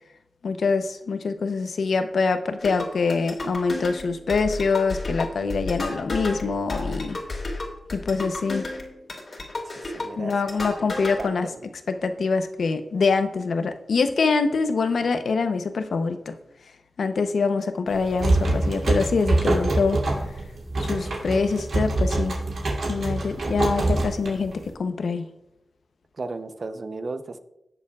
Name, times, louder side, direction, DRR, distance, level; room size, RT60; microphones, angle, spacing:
voice 1, 0.4-7.2 7.9-8.7 10.2-11.5 11.9-16.3 17.0-20.0 20.8-22.4 22.9-25.3, left 4 dB, 80° left, 8 dB, 0.8 m, -24 dB
sound 1, 2.6-11.2, left 2 dB, 50° left, 2.2 m, -32 dB
voice 2, 9.8-10.3 11.2-11.6 26.2-27.4, right 3 dB, 50° right, 9 dB, 0.7 m, -34 dB
sound 2, 17.9-24.7, right 2 dB, 75° right, 2.7 m, -25 dB
18.0 x 7.0 x 2.4 m, 0.88 s
wide cardioid pair, 100°, 0 cm